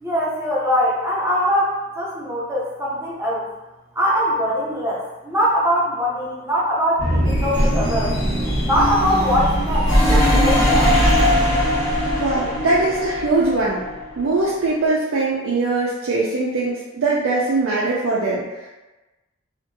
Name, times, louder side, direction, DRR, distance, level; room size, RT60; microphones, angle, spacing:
voice 1, 0.0-3.5 3.9-8.2 8.6-10.9, equal, 10° right, -6 dB, 0.5 m, -22 dB
sound 1, 7.0-14.4, equal, 65° left, 1.2 m, -19 dB
voice 2, 12.2-13.9 14.2-18.7, right 3 dB, 85° right, -5 dB, 0.4 m, -21 dB
2.8 x 2.5 x 2.6 m, 1.1 s
head